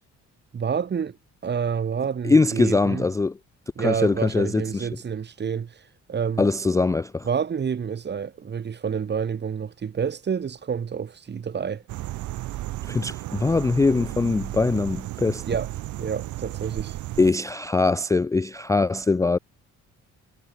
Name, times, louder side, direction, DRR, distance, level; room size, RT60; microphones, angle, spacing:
voice 1, 0.5-1.2 1.4-3.0 3.8-5.8 6.1-6.4 7.2-11.8 15.4-15.7 16.0-17.0, right 7 dB, 35° right, 1.0 m, -28 dB
voice 2, 2.2-3.4 3.8-4.9 6.4-7.3 12.9-15.4 17.2-19.4, left 3 dB, 10° left, 0.3 m, -22 dB
sound 1, 11.9-17.3, right 16 dB, 75° right, 0.7 m, -34 dB
cardioid pair, 90°, 30 cm